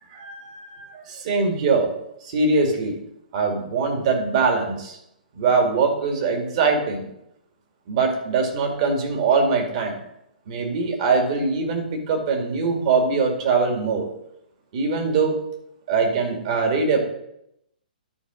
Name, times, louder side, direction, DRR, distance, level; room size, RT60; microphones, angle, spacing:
voice 1, 0.1-1.9 2.2-3.0 3.3-5.0 5.4-7.0 7.9-10.0 10.5-14.1 14.7-15.4 15.9-17.0, right 4 dB, 45° right, 3 dB, 2.3 m, -22 dB
11.5 x 4.6 x 6.2 m, 0.80 s
hypercardioid pair, 130°, 5 cm